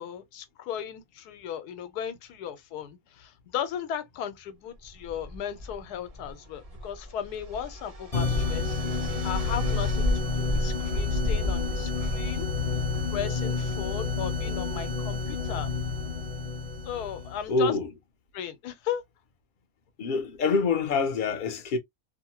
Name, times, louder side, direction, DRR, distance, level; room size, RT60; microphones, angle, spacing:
voice 1, 0.0-10.1 10.3-12.5 13.1-15.7 16.9-17.8 18.3-19.0, left 9 dB, 90° left, 1.2 m, -36 dB
sound 1, 4.8-13.2, left 1 dB, 40° right, 0.5 m, -33 dB
sound 2, 8.1-17.5, left 4 dB, 25° left, 0.9 m, -30 dB
voice 2, 17.5-17.9 20.0-21.8, left 4 dB, 55° left, 0.6 m, -26 dB
2.9 x 2.1 x 2.8 m
omnidirectional pair, 1.6 m